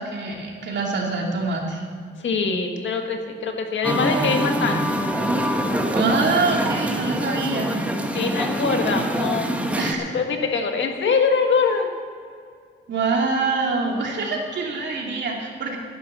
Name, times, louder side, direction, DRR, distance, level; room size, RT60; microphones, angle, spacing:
voice 1, 0.0-1.8 5.9-7.8 9.8-10.2 12.9-15.8, right 3 dB, 65° right, 0 dB, 2.7 m, -25 dB
voice 2, 2.2-4.9 8.1-9.8 10.1-11.9, left 5 dB, 70° left, 4 dB, 1.7 m, -23 dB
Musical instrument, 3.8-9.9, equal, 5° right, 1.3 m, -24 dB
11.0 x 10.5 x 7.4 m, 2.2 s
cardioid pair, 110°, 20 cm